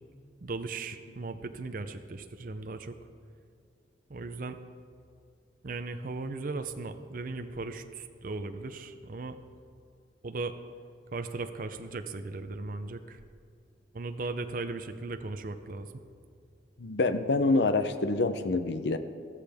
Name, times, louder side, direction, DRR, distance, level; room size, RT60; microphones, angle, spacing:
voice 1, 0.4-3.0 4.1-4.6 5.6-9.4 10.2-10.5 11.1-13.2 13.9-15.9, right 3 dB, 50° right, 8 dB, 0.6 m, -37 dB
voice 2, 16.8-19.0, left 3 dB, 70° left, 10 dB, 0.6 m, -26 dB
15.0 x 13.0 x 3.5 m, 2.3 s
head